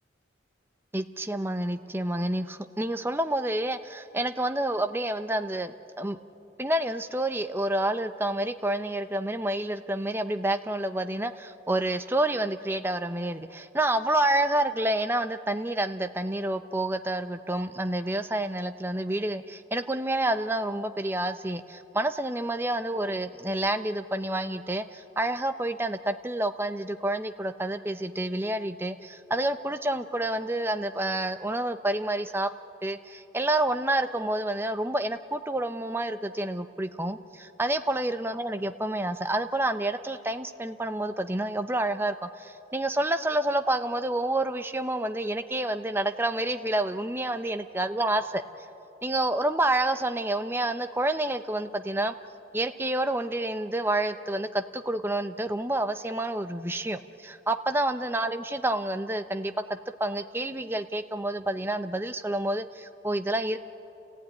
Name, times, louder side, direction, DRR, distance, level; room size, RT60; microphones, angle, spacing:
voice 1, 0.9-6.2 6.6-32.5 32.8-48.4 49.0-52.1 52.5-59.5 60.0-63.6, right 1 dB, 10° right, 8 dB, 0.7 m, -28 dB
29.5 x 15.5 x 9.6 m, 2.8 s
head